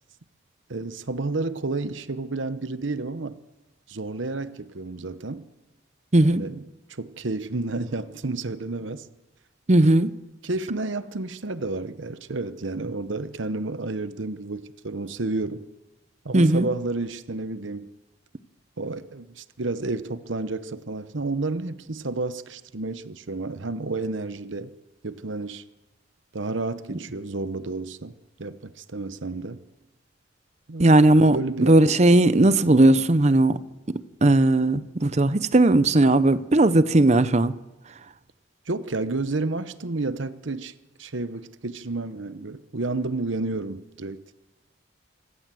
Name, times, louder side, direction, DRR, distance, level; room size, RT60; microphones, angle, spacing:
voice 1, 0.7-3.4 3.9-5.5 6.3-6.6 6.9-9.1 10.4-15.6 16.2-17.9 18.8-24.7 25.0-25.6 26.3-28.1 28.4-29.6 30.7-30.9 31.3-31.8 38.7-40.7 41.0-44.2, right 3 dB, 75° right, 1.0 m, -31 dB
voice 2, 6.1-6.4 9.7-10.1 16.3-16.7 30.8-33.6 33.9-37.5, right 2 dB, 35° right, 0.7 m, -18 dB
26.0 x 14.0 x 7.7 m
head